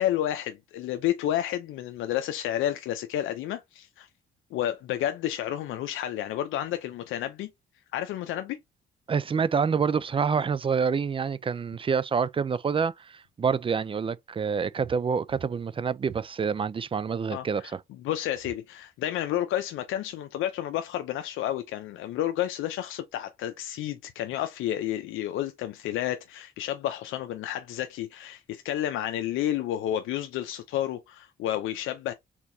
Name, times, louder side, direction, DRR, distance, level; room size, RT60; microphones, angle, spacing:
voice 1, 0.0-4.1 4.5-7.5 7.9-8.6 17.3-17.7 18.0-32.1, left 12 dB, 85° left, 0.6 m, -30 dB
voice 2, 9.1-17.8, right 6 dB, 25° right, 0.4 m, -27 dB
sound 1, 14.8-15.0 15.3-15.6 16.0-16.3 18.4-18.6, right 8 dB, 50° right, 1.0 m, -45 dB
4.5 x 4.0 x 2.7 m
cardioid pair, 90°, 20 cm